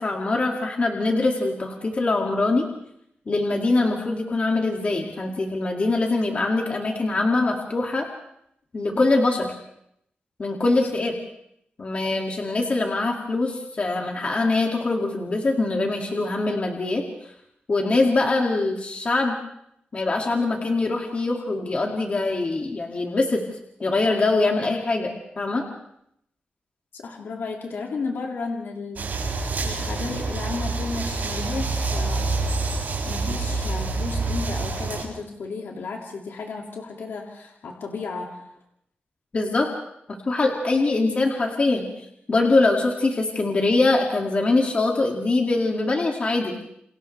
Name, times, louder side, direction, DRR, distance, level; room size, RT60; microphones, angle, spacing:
voice 1, 0.0-2.7 3.3-8.1 8.7-9.5 10.4-11.1 11.8-17.0 17.7-19.4 19.9-23.4 23.8-25.7 39.3-39.7 40.1-41.9 42.3-46.5, left 2 dB, 35° left, 1 dB, 2.3 m, -23 dB
voice 2, 26.9-29.1 29.6-32.4 33.0-38.5, left 4 dB, 90° left, 0 dB, 2.3 m, -33 dB
sound 1, 29.0-35.0, right 3 dB, 55° right, 7.6 m, -27 dB
29.0 x 27.5 x 3.4 m, 0.74 s
wide cardioid pair, 175°, 4 cm